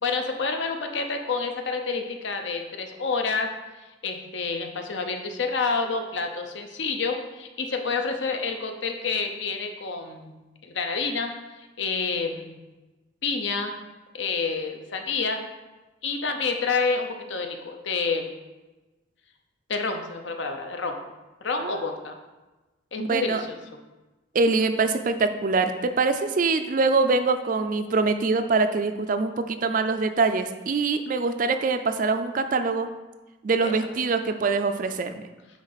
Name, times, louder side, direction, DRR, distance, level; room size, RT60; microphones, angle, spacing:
voice 1, 0.0-3.5 4.0-10.4 10.6-11.3 11.8-12.6 13.2-13.7 14.1-15.4 16.0-18.3 19.7-21.0 21.4-22.1 22.9-23.4 33.6-33.7, left 4 dB, 65° left, 5 dB, 0.8 m, -28 dB
voice 2, 23.0-23.4 24.3-32.9 33.4-35.1, right 4 dB, 40° right, 9 dB, 0.4 m, -24 dB
9.5 x 3.8 x 4.1 m, 1.1 s
head